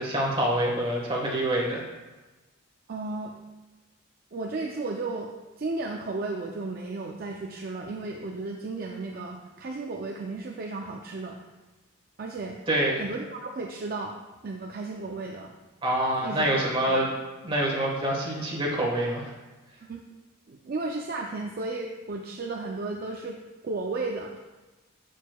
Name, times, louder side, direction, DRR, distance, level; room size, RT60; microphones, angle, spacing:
voice 1, 0.0-1.8 12.7-13.0 15.8-17.1 17.4-19.3, right 1 dB, 25° right, -3 dB, 1.3 m, -26 dB
voice 2, 2.9-3.4 4.3-11.5 12.2-12.6 13.0-14.2 14.4-15.5 16.2-16.5 16.9-17.0 19.8-20.0 20.5-23.4 23.6-24.4, right 3 dB, 45° right, 1 dB, 0.4 m, -34 dB
7.0 x 6.4 x 2.3 m, 1.2 s
head